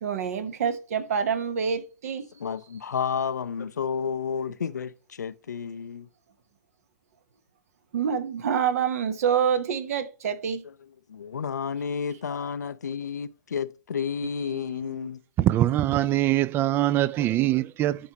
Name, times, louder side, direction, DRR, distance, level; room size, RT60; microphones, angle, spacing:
voice 1, 0.0-2.2 7.9-10.6, right 7 dB, 60° right, 1.0 m, -26 dB
voice 2, 2.3-6.1 10.2-10.4 10.6-15.2, left 6 dB, 80° left, 0.5 m, -31 dB
voice 3, 15.4-18.1, right 14 dB, 25° right, 0.3 m, -23 dB
11.5 x 4.7 x 2.9 m
hypercardioid pair, 120°, 9 cm